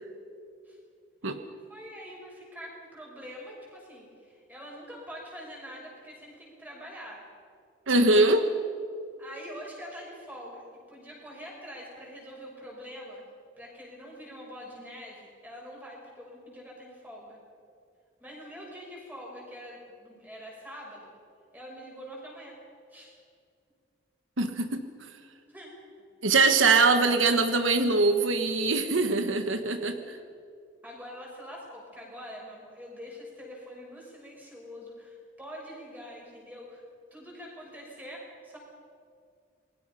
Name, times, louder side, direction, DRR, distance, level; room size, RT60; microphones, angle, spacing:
voice 1, 1.7-7.2 9.2-13.2 13.6-17.4 18.2-21.2 21.5-22.6 22.9-23.2 25.5-25.7 30.8-36.8 37.1-38.6, equal, 10° right, -2 dB, 6.3 m, -44 dB
voice 2, 7.9-8.5 24.4-24.8 26.2-30.2, right 3 dB, 85° right, 8 dB, 1.4 m, -23 dB
28.0 x 21.5 x 5.7 m, 2.3 s
head